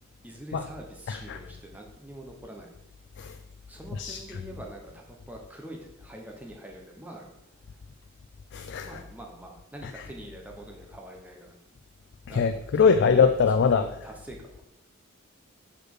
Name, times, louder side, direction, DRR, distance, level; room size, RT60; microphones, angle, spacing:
voice 1, 0.2-2.7 3.7-7.3 8.8-11.6 12.3-14.6, right 1 dB, 10° right, 0 dB, 1.0 m, -44 dB
voice 2, 1.1-1.4 3.2-3.4 4.0-4.2 8.5-9.0 12.3-13.8, left 5 dB, 55° left, 8 dB, 0.3 m, -22 dB
5.2 x 4.3 x 6.1 m, 0.86 s
head